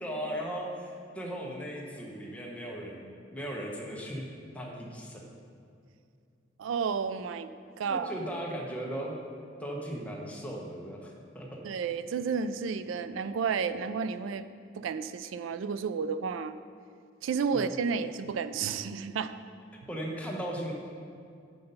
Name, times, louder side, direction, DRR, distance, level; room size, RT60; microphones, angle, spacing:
voice 1, 0.0-4.3 4.5-5.2 7.8-9.1 9.6-11.6 17.5-17.7 19.9-20.7, equal, 5° left, -2 dB, 0.9 m, -37 dB
voice 2, 6.6-7.5 7.8-8.2 11.6-14.5 14.7-16.6 17.2-19.3, right 6 dB, 85° right, 13 dB, 0.3 m, -31 dB
6.7 x 5.8 x 5.4 m, 2.4 s
head